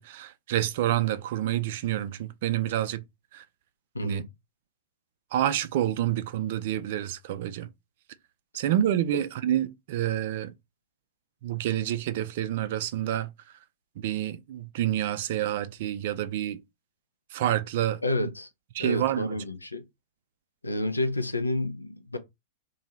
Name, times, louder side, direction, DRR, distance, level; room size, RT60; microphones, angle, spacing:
voice 1, 0.0-3.0 3.3-3.4 4.0-4.2 5.3-7.7 8.5-10.5 11.4-13.3 14.0-16.6 17.3-18.0 18.7-19.3, right 12 dB, 50° right, 0.3 m, -28 dB
voice 2, 3.9-4.3 9.1-9.2 18.0-18.5 18.8-19.8 20.6-22.2, left 1 dB, 85° left, 0.5 m, -30 dB
2.7 x 2.3 x 3.0 m
figure-of-eight pair, 100°, 0 cm